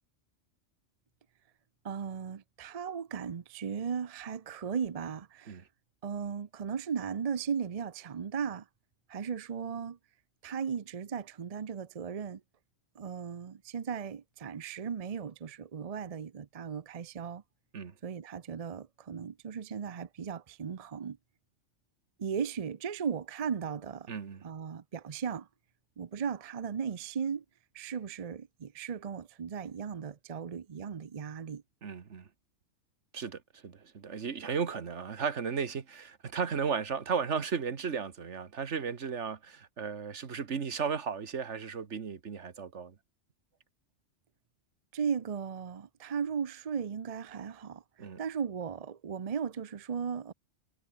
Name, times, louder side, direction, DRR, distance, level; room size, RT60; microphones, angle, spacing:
voice 1, 1.8-5.6 6.0-8.7 9.1-10.0 10.4-12.4 13.0-17.4 18.0-21.2 22.2-24.1 24.4-25.5 26.0-27.4 27.7-31.6 44.9-50.3, right 7 dB, 40° right, 0.6 m, -36 dB
voice 2, 24.1-24.4 31.8-32.3 33.1-42.9 48.0-48.2, right 6 dB, 70° right, 1.7 m, -35 dB
omnidirectional pair, 1.3 m